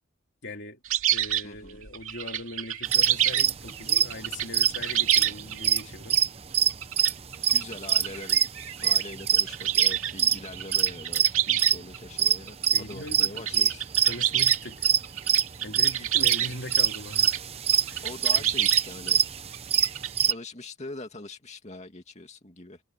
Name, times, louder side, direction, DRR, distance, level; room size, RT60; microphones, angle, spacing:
voice 1, 0.4-0.8 1.1-6.2 12.7-13.7 14.0-14.9 15.6-17.4 17.9-18.0 18.4-18.5, left 2 dB, 55° left, 3.2 m, -40 dB
sound 1, 0.8-6.2 6.7-12.0 12.3-17.4 17.7-20.3, right 12 dB, 75° right, 2.2 m, -29 dB
voice 2, 1.4-1.8 7.5-8.4 8.8-13.9 18.0-19.3 20.2-22.8, left 2 dB, 35° left, 2.5 m, -42 dB
sound 2, 2.9-6.3 6.5-11.8 12.2-14.6 14.8-15.0 15.3-15.4 15.8-20.3, right 9 dB, 30° right, 0.7 m, -23 dB
head